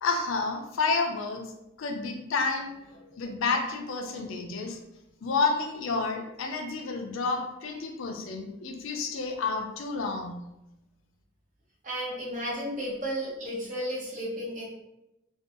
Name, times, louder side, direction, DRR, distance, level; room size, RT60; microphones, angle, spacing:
voice 1, 0.0-1.5 1.8-2.7 3.2-4.8 5.2-10.4, left 4 dB, 70° left, 4 dB, 0.4 m, -30 dB
voice 2, 11.8-14.6, equal, 35° right, -5 dB, 0.7 m, -33 dB
2.6 x 2.2 x 2.4 m, 0.91 s
head